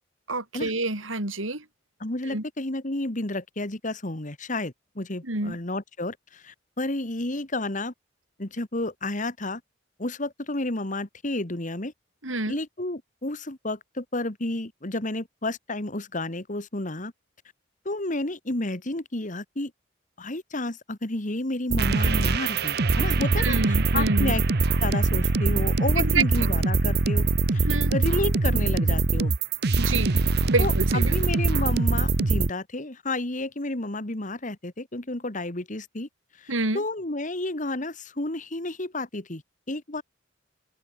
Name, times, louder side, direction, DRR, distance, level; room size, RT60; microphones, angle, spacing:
voice 1, 0.3-1.6 2.3-2.4 5.3-5.6 12.2-12.6 23.4-24.4 26.0-26.2 27.6-27.9 29.8-30.2 30.5-31.2 36.5-36.8, right 3 dB, 90° right, 5.8 m, -27 dB
voice 2, 2.0-7.9 8.4-9.6 10.0-11.9 12.5-17.1 17.9-19.7 20.2-24.4 24.8-29.3 30.6-36.1 36.4-39.4 39.7-40.0, left 2 dB, 40° left, 2.0 m, -31 dB
sound 1, 21.7-32.5, right 3 dB, 55° right, 0.9 m, -23 dB
open air
head